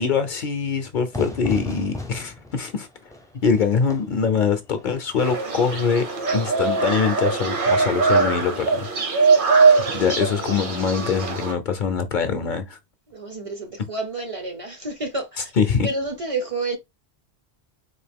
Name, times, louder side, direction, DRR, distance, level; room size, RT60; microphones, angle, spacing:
voice 1, 0.0-2.9 3.4-6.1 6.3-8.9 9.7-12.8 15.6-15.9, left 6 dB, 55° left, 0.6 m, -23 dB
Fire / Fireworks, 1.1-6.7, left 1 dB, 5° left, 0.5 m, -37 dB
sound 1, 5.2-11.5, right 4 dB, 55° right, 1.1 m, -21 dB
voice 2, 13.1-15.5 15.8-16.8, right 2 dB, 40° right, 0.6 m, -29 dB
4.0 x 2.6 x 3.3 m
omnidirectional pair, 1.1 m